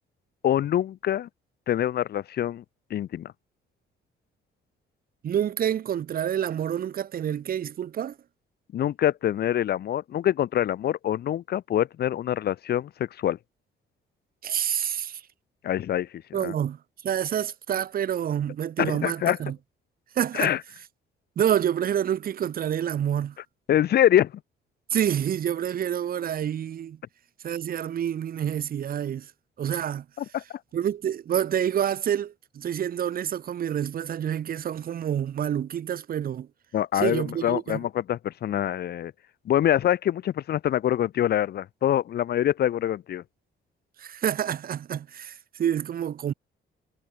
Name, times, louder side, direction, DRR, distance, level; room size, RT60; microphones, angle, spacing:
voice 1, 0.4-1.3 1.7-2.6 2.9-3.3 8.7-13.4 15.6-16.5 18.8-19.4 20.3-20.6 23.7-24.3 30.2-30.4 36.7-39.1 39.5-43.2, left 11 dB, 55° left, 0.6 m, -25 dB
voice 2, 5.2-8.2 14.4-15.2 16.3-19.6 20.1-20.5 21.4-23.4 24.9-27.0 27.4-29.3 29.6-30.0 30.7-36.5 36.9-37.8 44.0-46.3, right 9 dB, 45° right, 0.7 m, -28 dB
cardioid pair, 90°, 20 cm